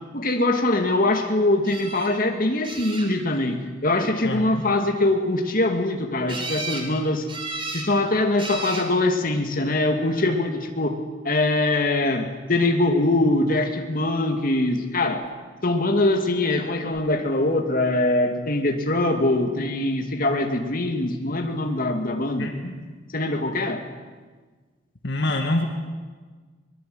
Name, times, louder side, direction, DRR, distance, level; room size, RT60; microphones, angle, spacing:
voice 1, 0.1-7.3 7.7-11.0 11.2-15.2 15.6-22.7 23.1-23.8, left 2 dB, 45° left, 3 dB, 2.3 m, -23 dB
sound 1, 1.6-2.1 2.6-3.4 6.3-6.9 7.3-7.9 8.4-8.9 9.8-10.3 16.5-16.6 16.9-17.0, right 3 dB, 25° right, 3.3 m, -34 dB
voice 2, 25.0-25.7, left 1 dB, 65° left, 3 dB, 2.0 m, -25 dB
23.0 x 21.5 x 7.9 m, 1.4 s
head